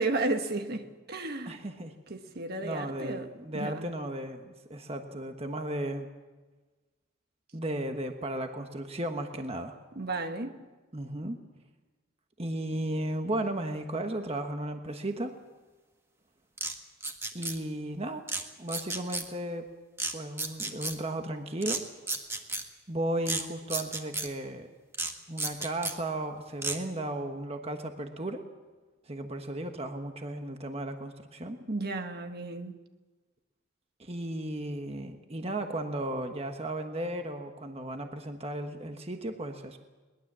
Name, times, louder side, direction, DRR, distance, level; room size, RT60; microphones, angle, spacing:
voice 1, 0.0-1.6 2.1-3.3 3.5-3.9 9.9-10.6 31.7-32.8, right 2 dB, 50° right, 1.4 m, -33 dB
voice 2, 1.5-1.9 2.6-6.1 7.5-9.8 10.9-11.4 12.4-15.3 17.3-18.2 18.6-19.7 20.1-21.8 22.9-24.7 25.3-28.4 29.1-31.6 34.0-39.8, right 1 dB, 30° right, 1.3 m, -35 dB
sound 1, 16.6-16.7 17.0-17.6 18.3-18.4 18.7-19.2 20.0-20.1 20.4-20.9 21.6-21.8 22.1-22.6 23.2-23.4 23.7-24.3 24.9-25.1 25.4-25.9 26.6-26.7, right 3 dB, 15° right, 1.7 m, -32 dB
22.0 x 20.5 x 7.5 m
head